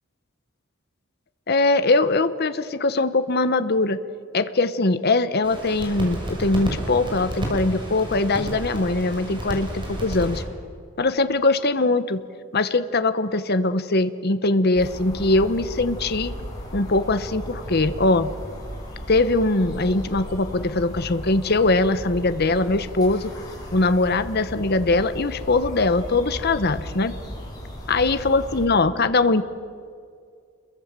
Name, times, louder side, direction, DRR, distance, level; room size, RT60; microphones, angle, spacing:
voice 1, 1.5-4.0 4.3-10.4 11.0-12.2 12.5-16.3 16.7-18.3 19.1-23.3 23.7-27.1 27.9-29.4, left 2 dB, 50° left, 11 dB, 1.0 m, -21 dB
sound 1, 5.4-10.4, right 1 dB, 25° right, 6.3 m, -31 dB
sound 2, 14.7-28.7, equal, 20° left, 7.1 m, -36 dB
29.0 x 22.5 x 7.5 m, 2.2 s
head